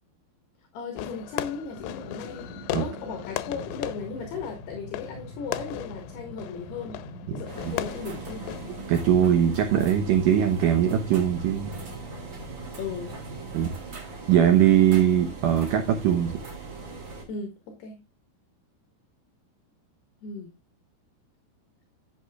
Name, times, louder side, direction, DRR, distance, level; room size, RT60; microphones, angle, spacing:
voice 1, 0.7-2.5 2.8-7.0 7.3-8.5 12.8-13.2 17.3-18.0 20.2-20.5, left 5 dB, 65° left, 3.5 m, -36 dB
Fireworks, 1.0-9.0, left 14 dB, 90° left, 3.0 m, -37 dB
sound 1, 1.7-14.8 15.1-15.2, equal, 40° left, 4.8 m, -44 dB
sound 2, 7.5-17.2, right 4 dB, 35° right, 2.7 m, -40 dB
voice 2, 8.9-11.7 13.5-13.7 14.3-16.3, right 10 dB, 85° right, 1.8 m, -21 dB
13.0 x 8.7 x 2.3 m
omnidirectional pair, 5.2 m